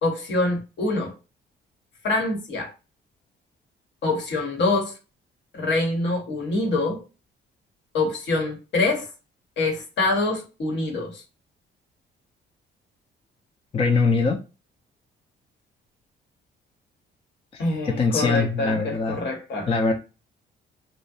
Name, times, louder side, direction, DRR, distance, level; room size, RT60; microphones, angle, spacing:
voice 1, 0.0-1.1 2.0-2.7 4.0-4.9 5.5-7.0 7.9-9.1 9.6-11.2 17.6-19.7, left 2 dB, 65° left, 1.0 m, -25 dB
voice 2, 13.7-14.4 17.5-19.2 19.7-19.9, left 4 dB, 30° left, 0.4 m, -22 dB
2.6 x 2.1 x 2.3 m
cardioid pair, 90°, 20 cm